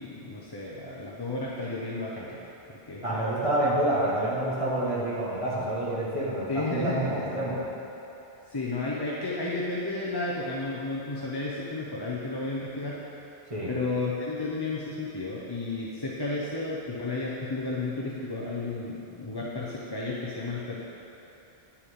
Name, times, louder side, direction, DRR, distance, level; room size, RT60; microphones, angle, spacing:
voice 1, 0.0-3.6 6.5-7.3 8.5-13.0 13.7-20.8, left 2 dB, 25° left, -6 dB, 0.7 m, -33 dB
voice 2, 3.0-7.6 13.5-13.7, right 1 dB, 30° right, -7 dB, 1.8 m, -28 dB
10.0 x 7.0 x 3.7 m, 2.9 s
omnidirectional pair, 1.1 m